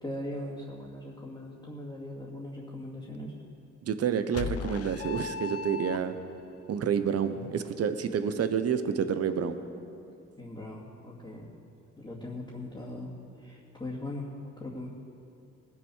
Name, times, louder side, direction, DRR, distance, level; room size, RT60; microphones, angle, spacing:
voice 1, 0.0-3.3 10.4-11.5 12.0-13.1 13.4-14.2 14.6-14.9, left 1 dB, 15° left, -7 dB, 2.5 m, -40 dB
voice 2, 3.8-6.1 6.7-9.6, right 7 dB, 55° right, 10 dB, 1.0 m, -29 dB
sound 1, 4.3-6.4, left 6 dB, 50° left, 0.7 m, -36 dB
19.5 x 7.1 x 6.4 m, 2.6 s
cardioid pair, 90°, 30 cm